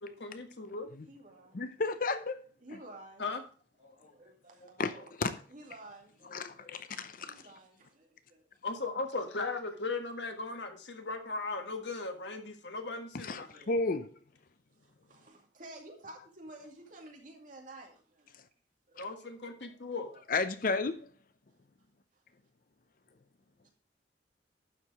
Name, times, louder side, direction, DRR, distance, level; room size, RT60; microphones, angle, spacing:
voice 1, 0.0-0.9 3.2-3.4 8.6-13.5 19.0-20.1, left 3 dB, 75° left, 1.5 m, -37 dB
voice 2, 1.0-1.6 2.6-3.2 3.8-5.1 5.5-6.7 7.3-8.4 13.2-13.7 14.8-18.4 18.9-20.2 22.1-22.2 23.6-23.7, right 2 dB, 45° right, 2.2 m, -52 dB
voice 3, 1.5-2.4 3.9-4.1 4.8-5.3 6.3-7.4 13.1-14.1 18.3-18.4 19.0-19.1 20.3-21.1, left 3 dB, 50° left, 0.6 m, -33 dB
11.5 x 4.9 x 4.8 m
head